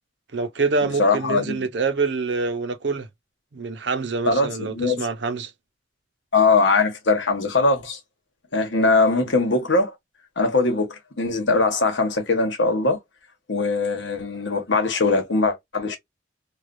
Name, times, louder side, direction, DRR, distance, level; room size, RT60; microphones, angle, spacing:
voice 1, 0.3-3.1 3.5-5.5, right 4 dB, 65° right, 0.6 m, -26 dB
voice 2, 1.0-1.6 4.3-5.1 6.3-8.0 8.5-9.9 10.4-13.0 13.5-16.0, left 3 dB, 75° left, 1.1 m, -21 dB
3.2 x 2.3 x 2.5 m
head